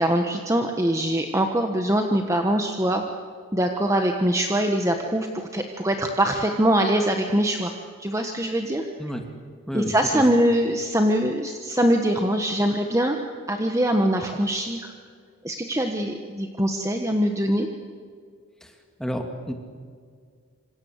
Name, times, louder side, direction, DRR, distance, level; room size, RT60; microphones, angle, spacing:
voice 1, 0.0-3.0 3.5-7.7 8.0-8.9 9.7-13.2 13.5-14.8 15.4-17.7, right 1 dB, 15° right, 4 dB, 1.4 m, -23 dB
voice 2, 9.7-10.2 18.6-18.7 19.0-19.5, equal, ahead, 3 dB, 2.5 m, -30 dB
27.0 x 26.0 x 8.2 m, 2.1 s
head